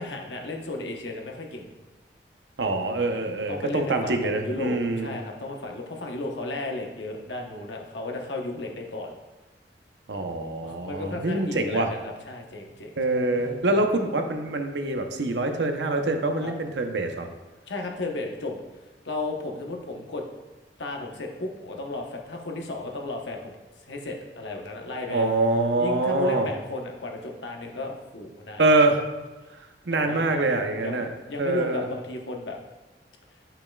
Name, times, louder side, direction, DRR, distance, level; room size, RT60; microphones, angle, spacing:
voice 1, 0.0-1.7 3.5-9.1 10.6-13.2 13.7-13.8 16.4-16.5 17.7-18.6 19.0-20.2 20.8-23.6 23.9-25.3 25.8-28.6 29.9-32.6, left 2 dB, 85° left, 2 dB, 0.9 m, -34 dB
voice 2, 2.6-5.2 10.1-11.9 13.0-17.3 25.1-26.5 28.6-29.0 29.9-31.1 31.4-31.9, right 2 dB, 75° right, 5 dB, 0.8 m, -25 dB
10.5 x 5.6 x 2.3 m, 1.2 s
head